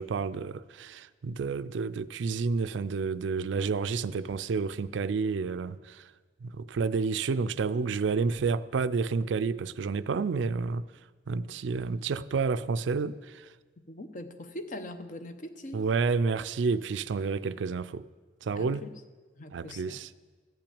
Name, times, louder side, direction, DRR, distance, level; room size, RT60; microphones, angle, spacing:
voice 1, 0.0-6.1 6.4-10.9 11.3-13.5 15.7-18.1 18.4-18.8 19.5-20.1, right 4 dB, 80° right, 0.4 m, -30 dB
voice 2, 13.8-15.9 18.5-18.9 19.4-20.0, left 1 dB, 45° left, 0.8 m, -42 dB
14.0 x 5.9 x 8.6 m
head